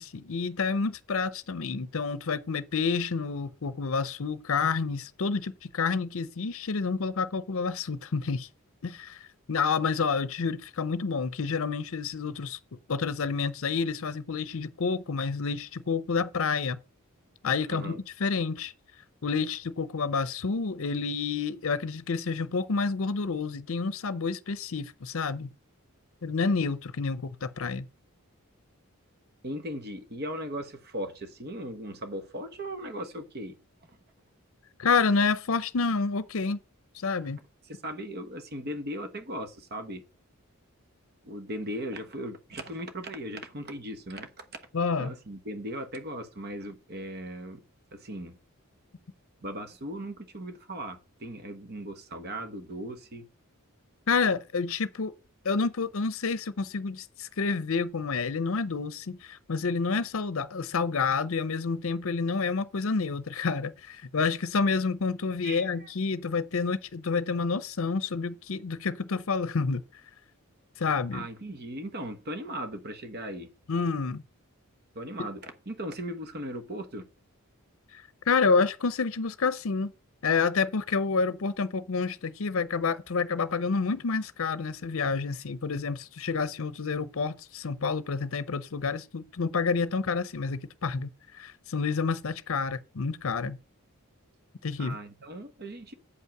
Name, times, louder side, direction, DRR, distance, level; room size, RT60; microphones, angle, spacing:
voice 1, 0.0-8.5 8.8-9.2 9.5-12.6 12.9-16.8 17.4-18.7 19.2-25.5 26.2-27.9 34.8-36.6 36.9-37.4 44.7-45.1 54.1-55.1 55.4-69.8 70.8-71.3 73.7-74.2 77.9-79.9 80.2-93.6 94.6-95.0, left 4 dB, 65° left, 0.6 m, -29 dB
voice 2, 17.7-18.0 29.4-33.6 33.9-34.0 37.7-40.0 41.2-44.6 45.0-47.6 47.9-48.4 49.4-53.3 65.4-65.9 71.1-73.5 74.9-77.1 94.8-95.9, equal, 45° right, 1.2 m, -38 dB
8.3 x 5.6 x 5.9 m
head